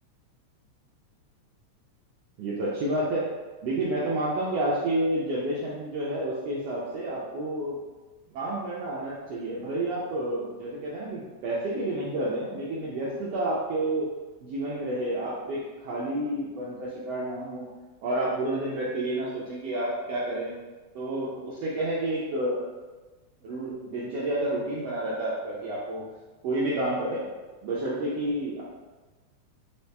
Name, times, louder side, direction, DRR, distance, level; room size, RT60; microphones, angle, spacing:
voice 1, 2.4-3.3 3.6-7.8 8.3-14.1 14.4-17.7 18.0-20.6 20.9-22.7 23.4-26.1 26.4-27.3 27.6-28.6, right 1 dB, 75° right, -6 dB, 1.5 m, -30 dB
4.7 x 2.9 x 3.3 m, 1.2 s
omnidirectional pair, 3.4 m